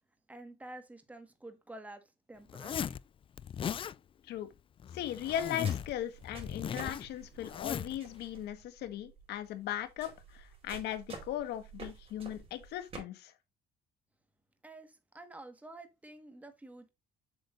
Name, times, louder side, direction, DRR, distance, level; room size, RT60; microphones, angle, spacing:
voice 1, 0.3-3.0 14.6-16.9, right 2 dB, 10° right, 1.7 m, -50 dB
Zipper (clothing), 2.5-3.0 3.4-3.9 4.8-5.9 6.2-8.0, left 8 dB, 30° left, 0.3 m, -37 dB
voice 2, 4.9-13.3, left 11 dB, 80° left, 1.6 m, -38 dB
sound 1, 5.1-13.0, right 4 dB, 35° right, 4.5 m, -50 dB
8.0 x 6.8 x 2.6 m
cardioid pair, 110°, 17 cm